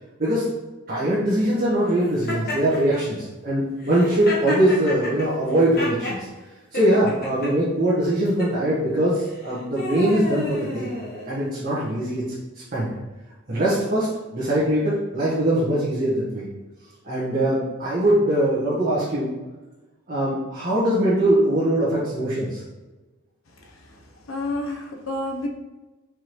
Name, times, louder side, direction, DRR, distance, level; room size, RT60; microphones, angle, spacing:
voice 1, 0.9-6.3 6.7-10.9 11.2-12.2 12.7-12.9 13.5-14.1 14.3-16.5 17.0-19.3 20.1-22.6, right 1 dB, 45° right, -9 dB, 1.2 m, -22 dB
Laughter, 2.3-3.0 3.8-6.2 6.7-7.5 8.2-8.5 9.3-11.5, left 1 dB, 50° left, 1.3 m, -31 dB
voice 2, 23.5-25.5, left 2 dB, 85° left, 2 dB, 0.8 m, -31 dB
4.7 x 3.6 x 3.1 m, 1.2 s
head